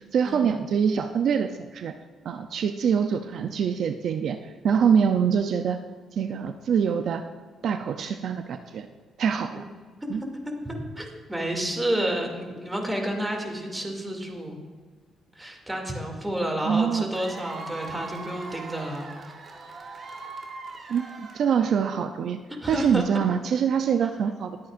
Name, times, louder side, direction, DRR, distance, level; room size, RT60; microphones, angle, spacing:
voice 1, 0.1-1.9 2.2-5.8 6.1-7.2 7.6-8.9 9.2-9.6 10.1-10.2 16.6-17.0 20.9-22.4 22.7-24.6, right 7 dB, 65° right, 7 dB, 0.5 m, -24 dB
voice 2, 10.0-10.4 10.6-14.6 15.3-19.1 22.6-23.0, right 1 dB, 10° right, 1 dB, 2.5 m, -30 dB
Cheering / Applause / Crowd, 17.1-21.8, right 3 dB, 45° right, 1.7 m, -40 dB
21.0 x 8.6 x 2.5 m, 1.5 s
cardioid pair, 90°, 0 cm